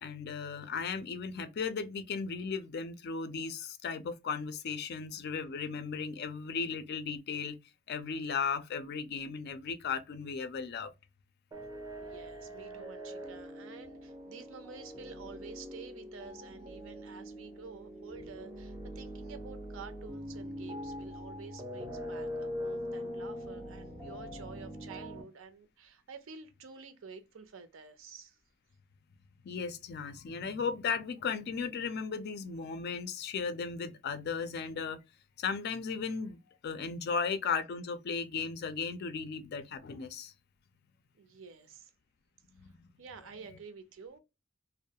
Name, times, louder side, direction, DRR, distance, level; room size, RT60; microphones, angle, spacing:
voice 1, 0.0-7.6 7.9-10.9 29.4-35.0 35.4-40.3 42.6-42.7, left 5 dB, 55° left, 0.4 m, -36 dB
sound 1, 11.5-25.2, equal, 15° right, 0.4 m, -42 dB
voice 2, 11.9-28.4 41.1-41.9 43.0-44.2, right 5 dB, 70° right, 0.5 m, -50 dB
2.3 x 2.1 x 2.7 m
head